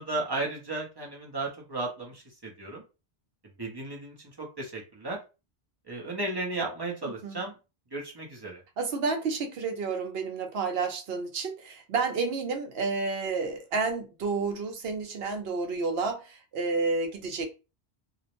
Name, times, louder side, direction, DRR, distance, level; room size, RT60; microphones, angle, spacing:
voice 1, 0.0-2.8 3.4-5.2 5.9-7.6 7.9-8.6, right 2 dB, 25° right, 0.6 m, -34 dB
voice 2, 7.0-7.4 8.8-17.5, right 4 dB, 75° right, 0.9 m, -30 dB
2.4 x 2.0 x 2.9 m
omnidirectional pair, 1.1 m